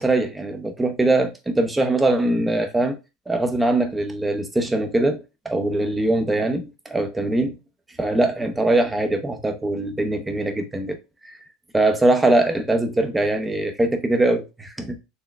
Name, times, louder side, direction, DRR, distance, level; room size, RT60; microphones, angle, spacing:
voice 1, 0.0-3.0 3.3-7.5 8.0-11.0 11.7-14.9, right 2 dB, 15° right, 0.8 m, -22 dB
4.3 x 3.2 x 2.2 m
hypercardioid pair, 85°, 0 cm